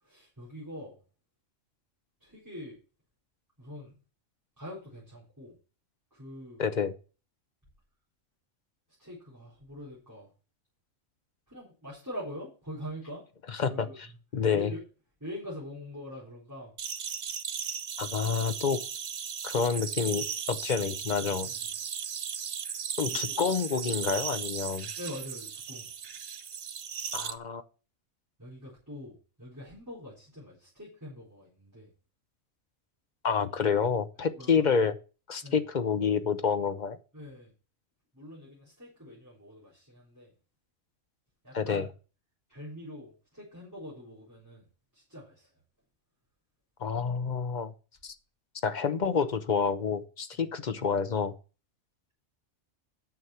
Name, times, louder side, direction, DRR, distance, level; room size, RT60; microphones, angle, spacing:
voice 1, 0.0-1.0 2.2-2.8 3.6-4.0 4.6-5.5 6.1-6.6 9.0-10.3 11.5-13.2 13.7-14.0 14.5-14.8 15.2-16.7 21.5-21.7 23.1-23.4 25.0-25.9 28.4-31.9 34.4-34.7 35.4-35.6 37.1-37.5 38.1-40.3 41.4-41.9 42.5-44.6 44.9-45.5 50.3-50.6, equal, 15° right, -7 dB, 3.9 m, -44 dB
voice 2, 6.6-6.9 13.5-13.9 14.3-14.7 18.0-18.8 19.4-21.5 23.0-24.9 27.1-27.6 33.2-34.9 35.3-37.0 41.5-41.8 46.8-47.7 48.0-48.1 48.6-51.3, left 6 dB, 40° left, 10 dB, 0.8 m, -28 dB
sound 1, 16.8-27.3, right 7 dB, 50° right, 0.7 m, -36 dB
9.5 x 6.4 x 5.7 m, 0.35 s
omnidirectional pair, 1.4 m